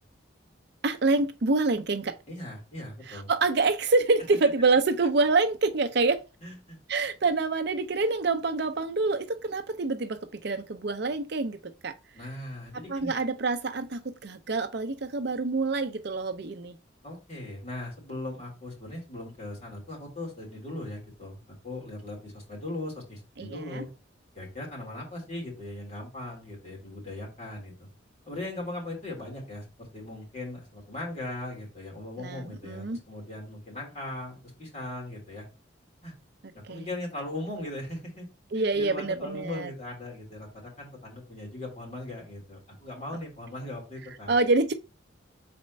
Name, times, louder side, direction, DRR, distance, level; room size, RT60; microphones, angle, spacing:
voice 1, 0.8-2.2 3.1-6.2 6.9-12.0 12.9-16.7 23.4-23.8 32.2-33.0 36.7-36.9 38.5-39.7 44.3-44.7, right 3 dB, 55° right, 0.6 m, -26 dB
voice 2, 2.3-3.3 6.4-6.8 12.1-13.1 17.0-23.9 24.3-27.7 28.3-35.5 36.0-36.1 36.5-38.3 38.5-44.4, left 1 dB, 35° left, 3.5 m, -39 dB
4.3 x 4.2 x 5.3 m
head